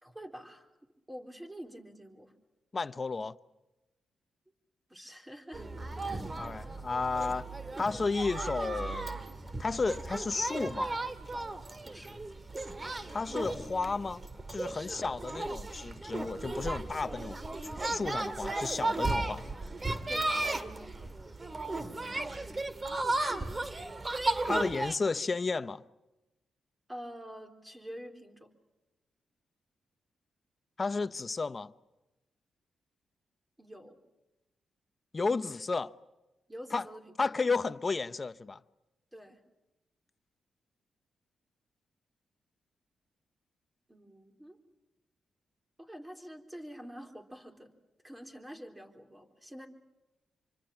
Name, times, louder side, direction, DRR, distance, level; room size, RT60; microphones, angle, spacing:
voice 1, 0.0-0.7 1.1-2.3 4.9-5.7 6.0-6.3 11.8-12.2 14.7-15.0 20.1-21.1 26.9-28.5 33.6-34.0 36.5-37.1 39.1-39.4 43.9-44.6 45.8-47.7 48.0-49.7, equal, 15° right, 3.8 m, -47 dB
voice 2, 2.7-3.4 6.4-7.5 7.8-9.2 9.6-10.9 13.1-14.2 14.5-17.4 17.8-19.6 24.4-25.8 30.8-31.7 35.1-35.9 36.7-36.9 37.2-38.6, left 4 dB, 40° left, 0.8 m, -32 dB
sound 1, 5.5-25.0, right 2 dB, 30° right, 1.9 m, -35 dB
26.0 x 25.0 x 7.3 m
supercardioid pair, 55°, 0 cm